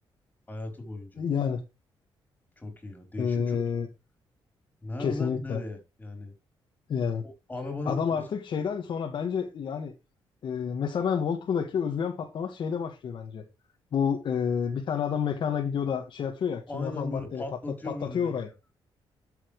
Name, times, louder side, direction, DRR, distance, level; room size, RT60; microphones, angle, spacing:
voice 1, 0.5-1.2 2.6-3.6 4.8-6.3 7.2-8.2 16.7-18.3, left 2 dB, 15° left, 4.3 m, -37 dB
voice 2, 1.2-1.6 3.2-3.9 5.0-5.6 6.9-7.2 7.9-9.9 10.4-13.4 13.9-17.4 17.8-18.5, left 7 dB, 60° left, 1.9 m, -29 dB
12.0 x 7.3 x 3.3 m
cardioid pair, 110°, 9 cm